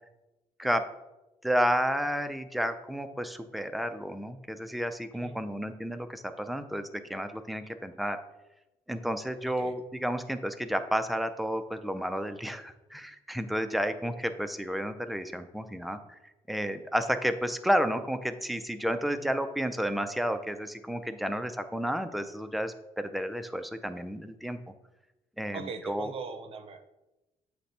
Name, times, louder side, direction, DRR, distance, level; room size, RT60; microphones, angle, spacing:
voice 1, 1.4-8.2 8.9-16.2 16.5-24.6 25.4-26.1, equal, ahead, 9 dB, 0.4 m, -31 dB
voice 2, 25.5-26.8, right 5 dB, 45° right, 9 dB, 0.6 m, -41 dB
8.1 x 3.3 x 4.1 m, 1.0 s
cardioid pair, 125°, 13 cm